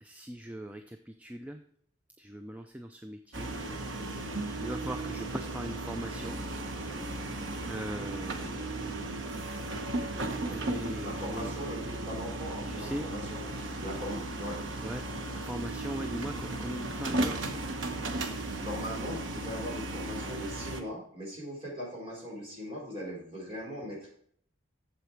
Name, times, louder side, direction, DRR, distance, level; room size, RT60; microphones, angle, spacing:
voice 1, 0.0-1.6 2.2-3.5 4.6-6.4 7.7-8.5 10.5-11.6 12.7-13.1 14.8-15.0 15.3-17.4, equal, 10° right, 6 dB, 0.4 m, -40 dB
sound 1, 3.3-20.8, right 2 dB, 80° right, 1.0 m, -36 dB
voice 2, 11.0-14.6 18.6-24.1, equal, 30° right, -4 dB, 4.2 m, -40 dB
8.3 x 7.3 x 4.5 m, 0.62 s
head